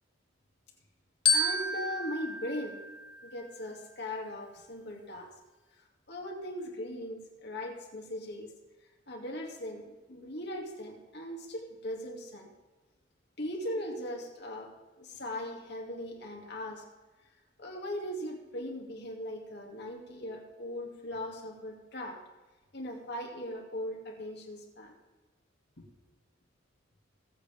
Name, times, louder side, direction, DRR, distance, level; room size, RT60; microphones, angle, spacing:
Glockenspiel, 1.2-3.7, left 3 dB, 30° left, 1.7 m, -31 dB
voice 1, 1.3-2.9 3.2-5.3 6.1-8.5 9.1-12.5 13.4-16.9 17.6-22.2 22.7-24.9 25.8-25.9, left 1 dB, 60° left, 1 dB, 2.5 m, -39 dB
22.0 x 8.1 x 3.6 m, 1.2 s
head